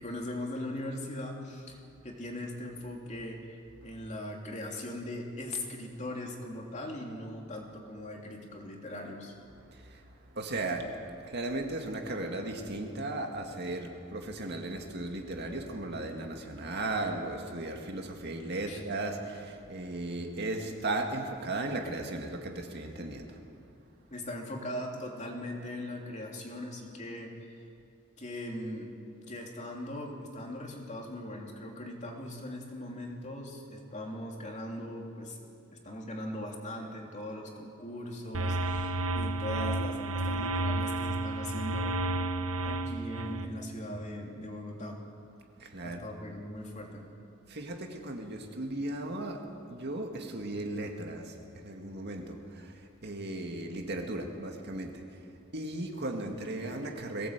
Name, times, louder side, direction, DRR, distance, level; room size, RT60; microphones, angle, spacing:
voice 1, 0.0-1.8 2.0-9.3 18.7-18.8 24.1-27.6 28.2-28.9 29.3-35.4 35.7-42.3 42.6-45.0 45.8-47.1, left 1 dB, 35° left, 3.0 m, -40 dB
voice 2, 9.7-23.4 45.6-46.1 47.5-57.3, right 2 dB, 55° right, 2.1 m, -36 dB
sound 1, 38.3-43.5, right 2 dB, 75° right, 1.2 m, -31 dB
22.0 x 17.5 x 8.2 m
head